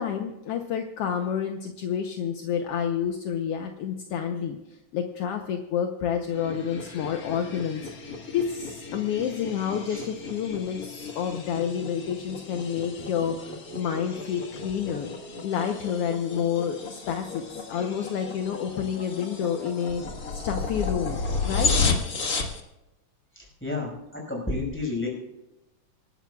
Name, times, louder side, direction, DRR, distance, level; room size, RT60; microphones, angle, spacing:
voice 1, 0.0-4.6 4.9-13.5 13.7-15.1 15.4-20.0 20.3-21.9, left 8 dB, 70° left, 4 dB, 1.5 m, -29 dB
sound 1, 6.3-22.6, left 4 dB, 40° left, 1.4 m, -33 dB
voice 2, 23.3-23.9 24.3-25.1, left 2 dB, 5° left, -1 dB, 5.0 m, -30 dB
26.0 x 12.0 x 2.3 m, 1.0 s
omnidirectional pair, 3.5 m